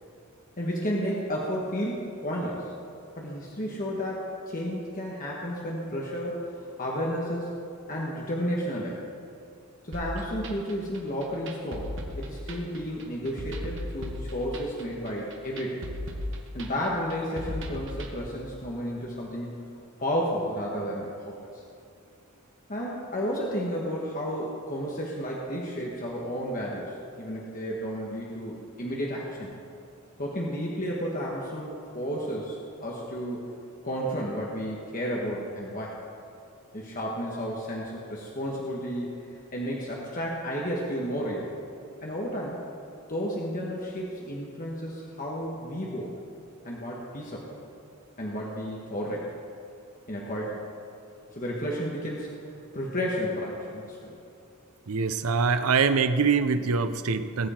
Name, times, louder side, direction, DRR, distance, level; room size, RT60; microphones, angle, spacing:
voice 1, 0.6-2.7 3.1-4.3 4.5-7.5 7.9-9.0 9.8-15.8 16.5-19.5 20.0-21.6 22.7-29.6 30.2-33.5 33.8-36.0 36.7-39.1 39.5-41.5 42.0-42.6 43.1-46.1 46.6-47.4 48.2-49.3 50.1-50.6 51.3-52.3 52.7-54.2, equal, 40° left, -3 dB, 1.4 m, -32 dB
sound 1, 9.9-18.1, equal, 60° right, 1.4 m, -37 dB
voice 2, 54.9-57.5, right 5 dB, 90° right, 11 dB, 0.6 m, -24 dB
19.5 x 7.8 x 4.4 m, 2.5 s
head